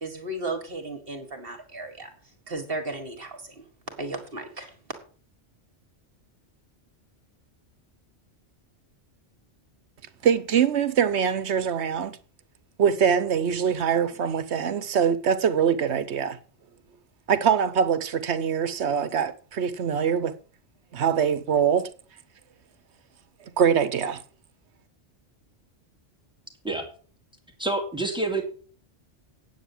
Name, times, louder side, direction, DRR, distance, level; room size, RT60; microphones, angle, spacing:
voice 1, 0.0-2.1 2.5-3.7 4.0-4.8, right 2 dB, 55° right, 2.0 m, -35 dB
voice 2, 10.2-12.2 12.8-16.4 17.3-20.4 20.9-21.9 23.6-24.2, right 7 dB, 70° right, 1.1 m, -23 dB
voice 3, 27.6-28.4, right 2 dB, 5° right, 2.2 m, -27 dB
9.2 x 8.2 x 7.2 m
omnidirectional pair, 1.2 m